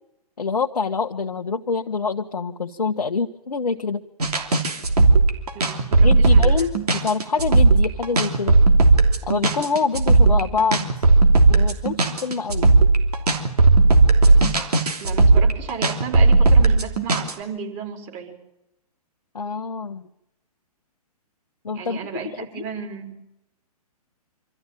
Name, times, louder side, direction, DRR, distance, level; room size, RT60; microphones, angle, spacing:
voice 1, 0.4-4.0 6.0-8.5 9.2-10.9 11.5-12.7 19.3-20.0 21.6-22.1 22.3-22.6, left 5 dB, 85° left, 2 dB, 1.2 m, -26 dB
sound 1, 4.2-17.3, right 3 dB, 75° right, 3.0 m, -16 dB
voice 2, 5.5-6.7 15.0-18.4 21.7-23.1, right 6 dB, 30° right, 3 dB, 4.4 m, -34 dB
25.5 x 14.0 x 9.2 m, 0.87 s
hypercardioid pair, 130°, 20 cm